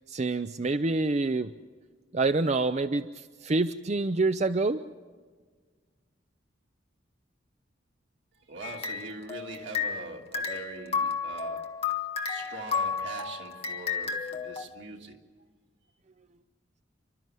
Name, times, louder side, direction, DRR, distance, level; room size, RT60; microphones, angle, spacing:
voice 1, 0.1-1.5 2.1-4.8, right 3 dB, 35° right, 10 dB, 0.5 m, -27 dB
voice 2, 8.3-11.7 12.3-15.2, right 2 dB, 75° right, 1 dB, 2.8 m, -42 dB
sound 1, 8.6-10.1 10.3-14.6, left 6 dB, 30° left, 1.5 m, -32 dB
29.5 x 12.5 x 7.6 m, 1.5 s
head